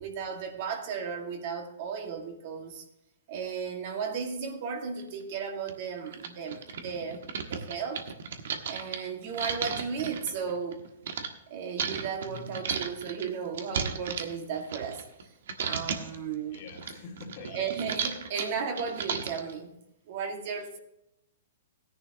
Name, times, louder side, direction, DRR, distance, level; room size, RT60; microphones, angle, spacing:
voice 1, 0.0-2.8 3.3-8.1 8.7-10.8 11.5-15.0 15.6-16.6 17.5-19.7 20.1-20.8, right 6 dB, 45° right, 3 dB, 1.9 m, -35 dB
sound 1, 5.0-5.1 5.7-5.8 6.1-11.3 11.8-15.2 15.5-16.2 16.5-19.5, right 6 dB, 70° right, 1.4 m, -34 dB
voice 2, 16.5-17.7, left 4 dB, 45° left, 0 dB, 2.3 m, -45 dB
15.5 x 10.5 x 2.9 m, 0.85 s
hypercardioid pair, 155°, 0 cm